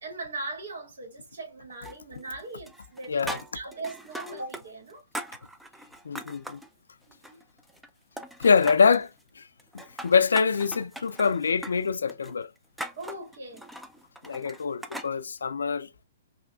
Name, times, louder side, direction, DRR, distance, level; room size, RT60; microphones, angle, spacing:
voice 1, 0.0-5.0 7.1-7.4 13.0-13.7, right 2 dB, 70° right, 2.0 m, -39 dB
sound 1, 1.8-2.4 2.7-4.6 4.9-6.7 7.1-7.9 8.2-9.0 9.6-15.1, right 1 dB, 5° right, 0.4 m, -40 dB
voice 2, 3.1-3.4 6.0-6.6 8.4-9.5 9.7-12.5 14.2-15.9, left 5 dB, 85° left, 0.3 m, -25 dB
3.4 x 2.8 x 2.2 m
hypercardioid pair, 130°, 0 cm